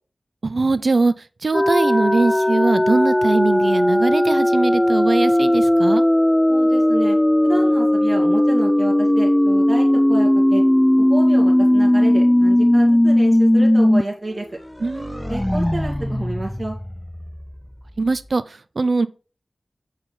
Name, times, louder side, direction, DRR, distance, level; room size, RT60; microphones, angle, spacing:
voice 1, 0.4-1.1 1.4-6.0 14.8-15.3 18.0-19.1, right 3 dB, 65° right, 0.6 m, -21 dB
sound 1, 1.5-14.0 14.4-14.5 14.8-17.5, left 1 dB, 15° left, 0.3 m, -17 dB
voice 2, 6.5-7.2 7.4-10.6 11.0-14.5 15.3-16.8, right 2 dB, 40° right, 2.1 m, -29 dB
8.8 x 4.3 x 3.9 m
cardioid pair, 40°, 0 cm